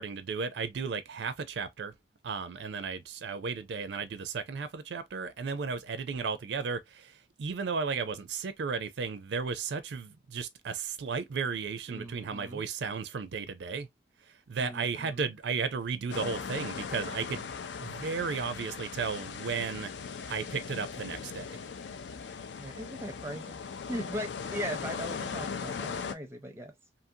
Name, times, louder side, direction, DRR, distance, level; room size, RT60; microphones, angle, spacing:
voice 1, 0.0-1.9 2.2-13.9 14.5-17.5 17.8-19.9 20.3-21.6, right 5 dB, 70° right, 0.4 m, -34 dB
voice 2, 11.9-12.6 14.6-15.3 22.6-26.7, equal, 15° right, 0.5 m, -39 dB
sound 1, 16.1-26.1, left 5 dB, 75° left, 0.4 m, -39 dB
2.7 x 2.5 x 2.6 m
head